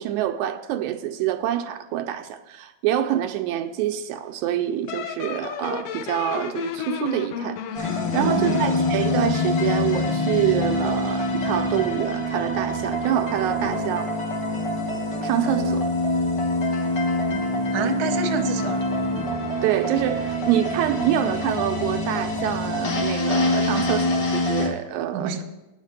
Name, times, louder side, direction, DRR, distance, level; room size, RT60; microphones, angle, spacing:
voice 1, 0.0-14.1 15.2-15.9 19.6-25.3, right 11 dB, 80° right, 1.9 m, -26 dB
sound 1, 4.9-10.9, left 10 dB, 85° left, 1.5 m, -30 dB
sound 2, 7.7-24.7, left 1 dB, 45° left, 1.7 m, -25 dB
voice 2, 8.2-8.6 17.7-18.8 25.1-25.4, right 5 dB, 60° right, 1.4 m, -27 dB
9.4 x 7.2 x 6.5 m
omnidirectional pair, 3.4 m